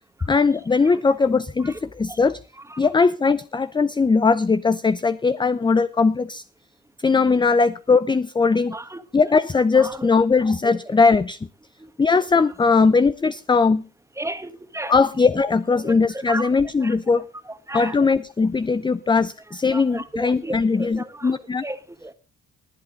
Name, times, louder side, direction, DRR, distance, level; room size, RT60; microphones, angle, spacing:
voice 1, 0.3-2.4 2.8-6.4 7.0-8.7 9.1-11.4 12.0-13.8 14.9-17.2 17.7-21.6, left 4 dB, 15° left, 14 dB, 0.5 m, -19 dB
voice 2, 8.7-9.0 9.7-10.1 10.6-11.0 11.8-11.9 14.2-14.9 15.8-16.5 16.8-16.9 17.7-18.0 19.7-21.3 21.6-22.1, right 1 dB, 10° right, 10 dB, 1.5 m, -34 dB
19.0 x 8.7 x 3.9 m, 0.34 s
cardioid pair, 90°, 30 cm